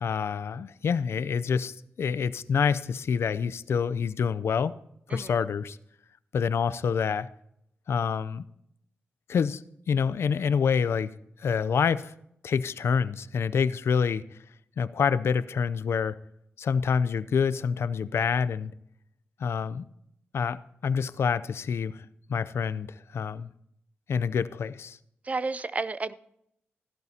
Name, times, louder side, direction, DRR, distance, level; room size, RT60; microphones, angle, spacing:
voice 1, 0.0-4.7 5.1-5.8 6.3-7.3 7.9-8.4 9.3-9.6 9.9-11.1 11.4-12.1 12.4-14.2 14.8-16.2 16.6-18.7 19.4-19.9 20.3-22.0 22.3-22.9 23.1-23.5 24.1-25.0, left 6 dB, 65° left, 0.5 m, -27 dB
voice 2, 5.1-5.4 25.2-26.1, right 3 dB, 30° right, 0.5 m, -31 dB
16.0 x 12.0 x 2.8 m
cardioid pair, 85°, 5 cm